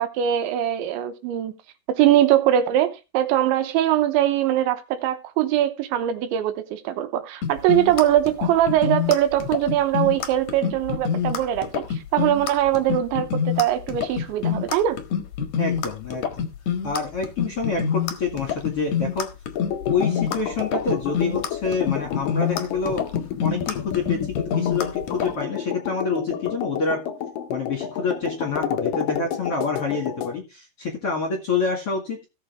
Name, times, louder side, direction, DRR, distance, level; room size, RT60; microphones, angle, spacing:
voice 1, 0.0-1.5 1.9-15.0, right 12 dB, 80° right, 3.1 m, -22 dB
sound 1, 7.4-25.3, left 7 dB, 65° left, 1.8 m, -26 dB
voice 2, 15.6-16.5 16.8-19.3 19.9-23.0 23.4-27.0 27.5-32.3, left 4 dB, 45° left, 2.0 m, -27 dB
sound 2, 19.5-30.3, left 8 dB, 90° left, 1.9 m, -30 dB
16.5 x 7.1 x 3.5 m
omnidirectional pair, 5.6 m